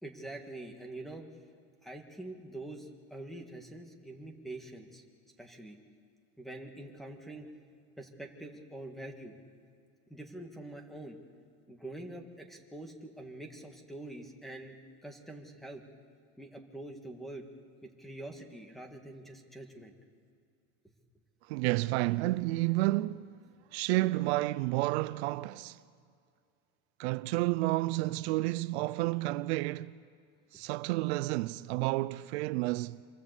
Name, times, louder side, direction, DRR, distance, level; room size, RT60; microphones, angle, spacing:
voice 1, 0.0-1.3 1.8-5.0 5.4-5.8 6.4-7.5 8.0-9.3 10.1-11.2 11.7-14.8 15.0-15.8 16.4-17.5 17.8-19.9 20.8-20.9 30.5-30.6, right 1 dB, ahead, 1.8 m, -45 dB
voice 2, 21.5-23.3 23.7-25.8 27.0-30.0 30.5-33.0, right 19 dB, 75° right, 0.6 m, -30 dB
26.5 x 19.0 x 8.2 m
cardioid pair, 170°, 32 cm